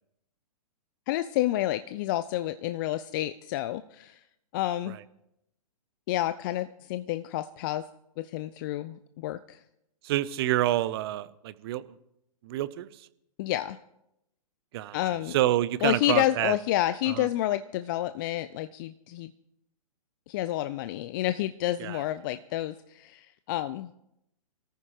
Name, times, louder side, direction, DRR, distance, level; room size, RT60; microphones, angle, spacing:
voice 1, 1.1-4.2 4.5-5.0 6.1-7.9 8.2-9.6 13.4-13.8 14.9-15.4 15.8-19.3 20.3-23.9, left 14 dB, 35° left, 12 dB, 0.4 m, -29 dB
voice 2, 10.0-11.8 12.4-13.1 14.7-15.0 15.3-16.5 17.1-17.3 21.8-22.0, right 14 dB, 40° right, 17 dB, 0.6 m, -28 dB
24.5 x 14.0 x 3.0 m, 0.82 s
figure-of-eight pair, 120°, 20 cm